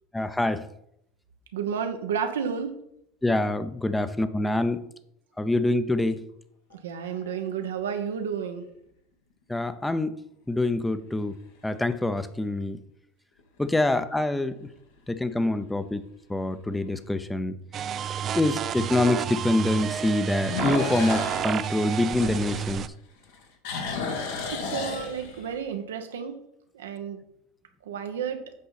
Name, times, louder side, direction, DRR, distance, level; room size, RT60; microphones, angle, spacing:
voice 1, 0.1-0.7 3.2-4.9 5.4-6.2 9.5-10.2 10.5-11.4 11.6-12.8 13.6-14.7 15.1-16.0 16.3-17.6 18.3-22.9, left 2 dB, 10° left, 11 dB, 0.7 m, -25 dB
voice 2, 1.5-2.7 6.8-8.6 24.4-26.3 26.7-27.2 27.9-28.4, right 7 dB, 85° right, 6 dB, 1.0 m, -31 dB
sound 1, 6.7-7.4 8.1-8.2 13.4-13.9 14.3-14.4 15.0-15.1 15.3-15.4 16.9-17.0 20.4-22.9 23.2-25.6, left 4 dB, 75° left, 1.6 m, -33 dB
sound 2, 17.7-22.9, right 9 dB, 40° right, 0.4 m, -30 dB
8.4 x 5.4 x 4.1 m, 0.75 s
hypercardioid pair, 90°, 0 cm